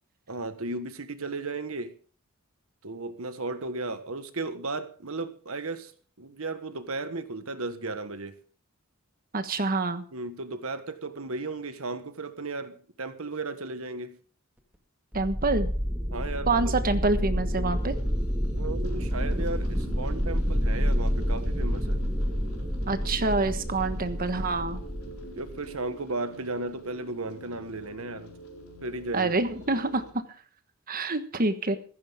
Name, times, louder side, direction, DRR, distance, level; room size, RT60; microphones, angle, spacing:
voice 1, 0.3-1.9 2.8-5.9 6.2-8.4 10.1-14.2 16.1-16.8 18.5-22.0 25.2-28.3 28.8-29.4, right 3 dB, 70° right, 1.5 m, -35 dB
voice 2, 9.3-10.0 15.1-15.7 16.5-18.0 22.9-24.8 29.1-30.0 30.9-31.8, right 3 dB, 40° right, 1.4 m, -26 dB
sound 1, 15.1-25.7, equal, 5° right, 1.9 m, -29 dB
sound 2, 17.5-30.1, equal, 75° left, 4.2 m, -48 dB
15.5 x 15.0 x 3.7 m
head